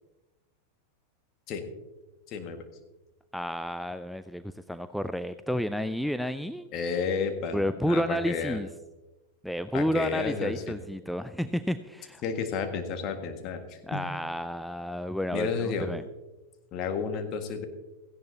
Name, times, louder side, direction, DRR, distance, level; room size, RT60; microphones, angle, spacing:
voice 1, 2.3-2.6 6.7-8.6 9.7-10.8 12.2-14.1 15.3-15.9 16.7-17.7, left 5 dB, 35° left, 6 dB, 1.7 m, -32 dB
voice 2, 3.3-6.7 7.5-8.7 9.4-12.2 13.9-16.0, equal, ahead, 11 dB, 0.4 m, -31 dB
17.0 x 15.0 x 2.8 m, 1.1 s
figure-of-eight pair, 90°, 0 cm